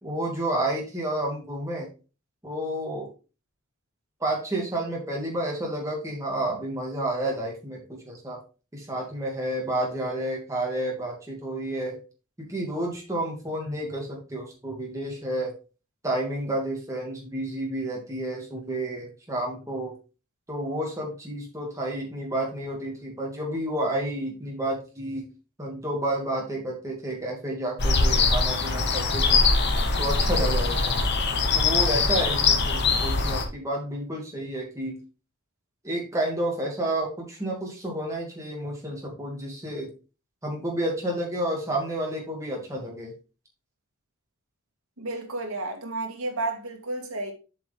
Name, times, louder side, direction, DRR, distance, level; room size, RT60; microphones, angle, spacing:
voice 1, 0.0-1.9 2.4-3.1 4.2-8.4 8.7-12.0 12.4-15.5 16.0-19.9 20.5-25.2 25.6-29.4 30.0-31.0 31.5-35.0 35.8-39.9 40.4-43.1, right 1 dB, 15° right, 2.3 m, -30 dB
sound 1, 27.8-33.5, left 4 dB, 50° left, 1.1 m, -22 dB
voice 2, 45.0-47.3, right 2 dB, 75° right, 1.9 m, -32 dB
7.7 x 5.1 x 3.5 m
head